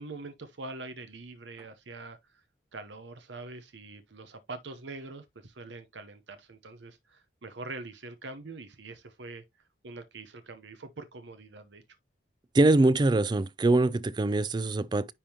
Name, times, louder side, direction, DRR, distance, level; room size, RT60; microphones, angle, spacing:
voice 1, 0.0-2.4 2.7-9.4 9.8-11.8, right 3 dB, 70° right, 0.8 m, -44 dB
voice 2, 12.5-15.1, right 2 dB, 25° right, 0.3 m, -23 dB
10.0 x 3.5 x 2.9 m
head